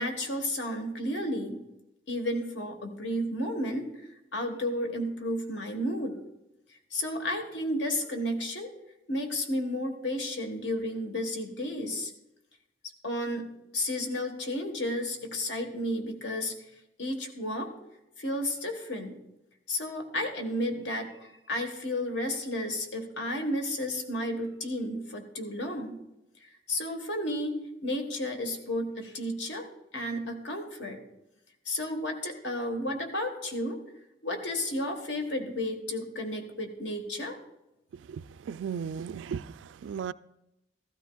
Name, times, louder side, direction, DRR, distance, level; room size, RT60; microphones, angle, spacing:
voice 1, 0.0-1.6 2.1-6.2 6.9-8.7 9.1-12.1 13.0-13.4 13.7-16.7 17.0-17.7 18.2-19.2 19.7-26.0 26.4-29.7 29.9-31.0 31.6-33.8 34.2-37.4, left 1 dB, 70° left, 1.3 m, -32 dB
voice 2, 38.1-40.1, right 7 dB, 80° right, 0.3 m, -36 dB
14.5 x 13.0 x 2.3 m
head